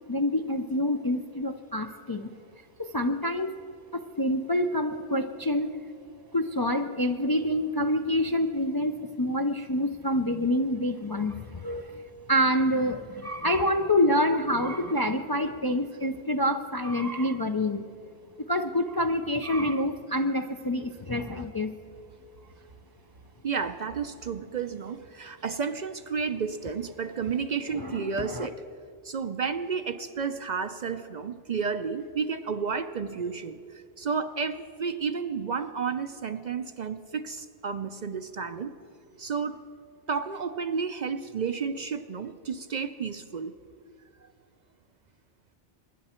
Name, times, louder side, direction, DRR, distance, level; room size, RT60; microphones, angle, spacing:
voice 1, 0.0-2.3 2.8-3.6 3.9-5.7 6.3-12.0 12.3-17.9 18.5-21.7 27.7-28.5, left 1 dB, 35° left, 5 dB, 0.4 m, -27 dB
voice 2, 23.4-28.6 29.0-38.7 39.2-39.6 40.1-43.5, right 5 dB, 55° right, 10 dB, 0.6 m, -32 dB
23.5 x 10.5 x 4.3 m, 2.6 s
omnidirectional pair, 1.1 m